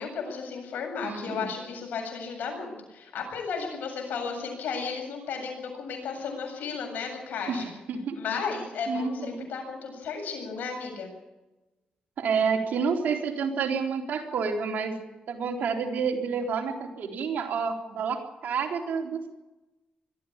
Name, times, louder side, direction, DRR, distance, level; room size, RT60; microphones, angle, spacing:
voice 1, 0.0-7.7 8.1-11.1, left 5 dB, 80° left, 2 dB, 7.8 m, -34 dB
voice 2, 1.0-1.5 7.5-8.2 8.9-9.5 12.2-15.0 15.3-19.3, right 5 dB, 75° right, 3 dB, 3.8 m, -29 dB
22.0 x 13.5 x 8.8 m, 1.1 s
cardioid pair, 75°, 3 cm